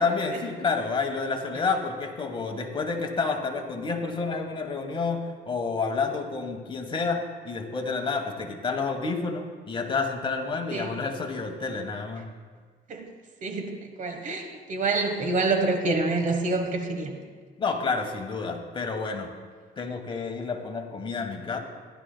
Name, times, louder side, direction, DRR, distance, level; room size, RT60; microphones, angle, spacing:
voice 1, 0.0-12.3 17.6-19.3 19.8-21.6, left 4 dB, 30° left, 4 dB, 1.3 m, -29 dB
voice 2, 13.4-17.2, right 3 dB, 50° right, 5 dB, 1.2 m, -27 dB
15.0 x 11.5 x 2.2 m, 1.6 s
cardioid pair, 110°, 17 cm